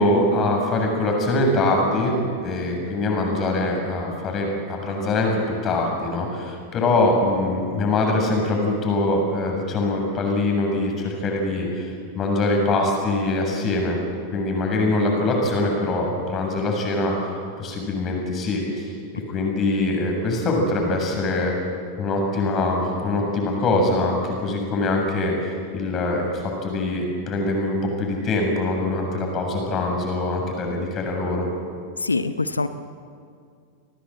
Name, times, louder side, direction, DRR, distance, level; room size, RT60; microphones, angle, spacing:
voice 1, 0.0-2.2 2.4-14.0 14.3-18.9 19.3-21.5 22.0-31.5, left 2 dB, 30° left, 2 dB, 7.2 m, -23 dB
voice 2, 32.0-32.7, left 3 dB, 80° left, 12 dB, 0.9 m, -24 dB
28.5 x 19.5 x 7.9 m, 2.3 s
figure-of-eight pair, 90°, 0 cm